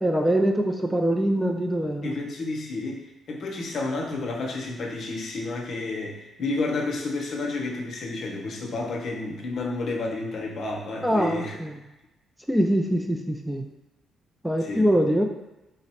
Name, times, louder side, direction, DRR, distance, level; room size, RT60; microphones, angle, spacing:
voice 1, 0.0-2.2 11.0-11.7 12.5-13.6 14.4-15.3, equal, 5° right, 3 dB, 0.4 m, -23 dB
voice 2, 2.0-11.6 14.6-14.9, left 3 dB, 60° left, 0 dB, 0.7 m, -31 dB
3.9 x 2.0 x 4.2 m, 0.98 s
cardioid pair, 90°, 0 cm